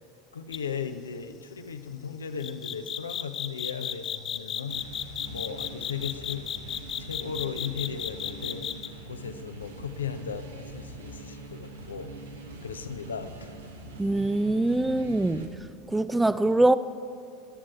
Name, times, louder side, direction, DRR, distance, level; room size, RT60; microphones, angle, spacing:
voice 1, 0.3-4.8 5.3-6.4 7.0-8.7 9.1-12.1 12.6-13.5, left 6 dB, 75° left, 0.6 m, -36 dB
sound 1, 0.5-0.7 2.4-8.9, left 10 dB, 35° left, 0.6 m, -33 dB
sound 2, 4.7-15.5, right 2 dB, 75° right, 1.4 m, -43 dB
voice 2, 14.0-15.5 15.9-16.8, right 2 dB, 10° right, 0.4 m, -23 dB
21.5 x 7.5 x 4.5 m
figure-of-eight pair, 75°, 0 cm